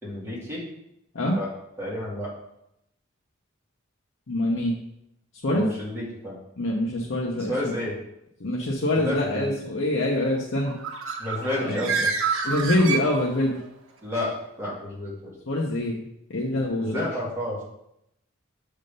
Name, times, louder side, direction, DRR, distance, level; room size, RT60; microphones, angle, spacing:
voice 1, 0.0-0.6 1.3-1.5 1.8-2.3 5.5-6.4 7.5-7.9 8.9-9.5 11.2-12.1 14.0-15.3 16.8-17.6, left 1 dB, 10° right, -7 dB, 2.1 m, -30 dB
voice 2, 4.3-4.8 5.4-5.7 6.6-7.8 8.4-10.8 11.6-11.8 12.4-13.6 15.5-16.0 16.3-17.1, left 1 dB, 65° left, -2 dB, 0.7 m, -25 dB
Bird, 10.6-13.7, right 5 dB, 80° right, 0.8 m, -28 dB
6.6 x 3.5 x 5.2 m, 0.83 s
head